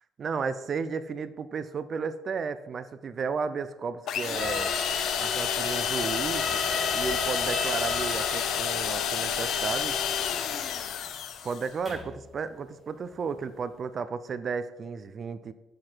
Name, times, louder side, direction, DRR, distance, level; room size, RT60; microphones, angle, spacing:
voice 1, 0.2-4.7 5.2-6.6 6.9-10.0 11.4-15.5, right 5 dB, 30° right, 13 dB, 0.4 m, -33 dB
sound 1, 4.1-11.7, left 8 dB, 60° left, 0.7 m, -29 dB
sound 2, 4.4-12.2, left 1 dB, 10° left, 2.8 m, -36 dB
7.7 x 6.1 x 4.4 m, 1.0 s
cardioid pair, 175°, 0 cm